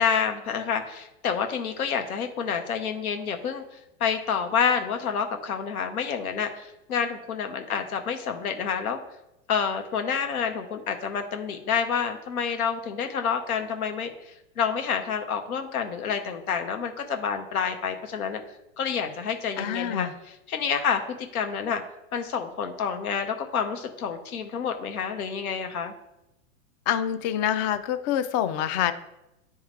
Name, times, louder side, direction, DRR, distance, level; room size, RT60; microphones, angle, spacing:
voice 1, 0.0-9.0 9.5-18.4 18.8-21.8 22.1-25.9, left 6 dB, 90° left, 6 dB, 1.0 m, -28 dB
voice 2, 19.6-20.1 26.9-28.9, left 10 dB, 35° left, 11 dB, 0.4 m, -26 dB
9.7 x 3.6 x 3.2 m, 0.89 s
hypercardioid pair, 125°, 42 cm